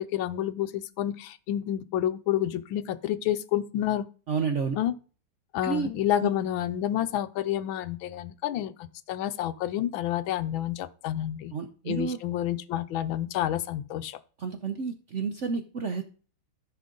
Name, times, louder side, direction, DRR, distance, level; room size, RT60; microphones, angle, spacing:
voice 1, 0.0-4.1 4.8-4.9 5.5-11.5 11.9-14.2, left 12 dB, 75° left, 1.4 m, -29 dB
voice 2, 4.3-4.8 5.6-5.9 6.2-6.3 11.5-12.2 14.4-16.0, right 5 dB, 70° right, 0.7 m, -30 dB
14.0 x 5.7 x 3.8 m
omnidirectional pair, 2.3 m